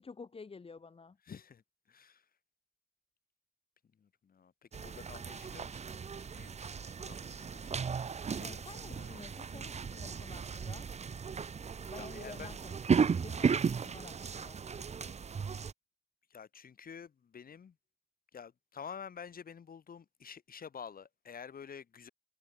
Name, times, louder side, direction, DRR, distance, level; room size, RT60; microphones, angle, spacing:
voice 1, 0.0-1.2 8.2-10.9 11.9-15.5, left 4 dB, 30° left, 1.7 m, -51 dB
voice 2, 1.2-1.6 1.9-2.2 4.0-5.9 6.3-7.8 8.3-9.2 11.9-12.5 16.3-17.7 18.3-22.1, left 7 dB, 45° left, 4.7 m, -49 dB
sound 1, 4.7-15.7, right 6 dB, 35° right, 1.0 m, -35 dB
cardioid pair, 90°, 20 cm